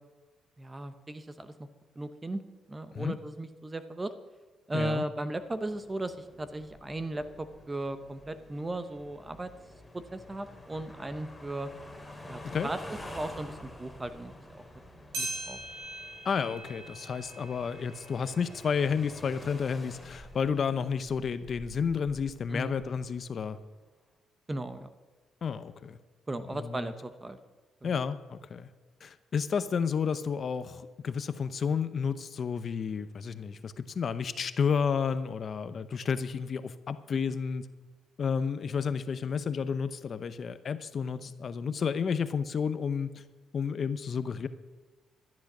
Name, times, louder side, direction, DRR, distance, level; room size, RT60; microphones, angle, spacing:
voice 1, 0.6-1.7 2.0-2.4 2.7-4.1 4.7-9.5 9.9-11.7 12.3-14.6 15.2-15.6 22.5-22.8 24.5-24.9 26.3-27.4 27.8-28.0 41.2-41.3, right 2 dB, 20° right, 11 dB, 0.8 m, -37 dB
voice 2, 4.7-5.0 12.4-12.7 16.2-23.6 25.4-26.0 26.5-26.9 27.8-28.7 29.0-37.7 38.2-43.2 43.5-44.5, left 6 dB, 50° left, 13 dB, 0.7 m, -31 dB
sound 1, 5.4-23.6, left 1 dB, 10° left, 2.6 m, -49 dB
sound 2, 15.1-19.8 20.3-20.4 21.2-21.3 22.2-22.3, right 2 dB, 85° right, 5.5 m, -42 dB
13.0 x 10.5 x 6.1 m, 1.3 s
cardioid pair, 90°, 0 cm